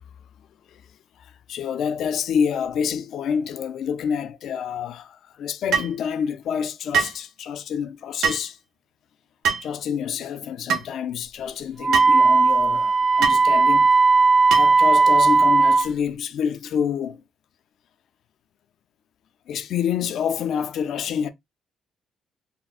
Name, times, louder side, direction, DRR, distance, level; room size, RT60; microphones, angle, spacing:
voice 1, 1.5-8.6 9.6-13.9 14.6-17.2 19.5-21.3, left 7 dB, 75° left, 0.4 m, -27 dB
sound 1, 5.7-6.0 6.9-7.2 8.2-8.5 9.4-9.7 10.7-10.9 11.9-12.2 13.2-13.4 14.5-14.8, right 6 dB, 85° right, 0.7 m, -23 dB
Wind instrument woodwind instrument, 11.8-15.9, right 4 dB, 30° right, 0.6 m, -16 dB
4.1 x 2.1 x 2.4 m
cardioid pair, 90°, 0 cm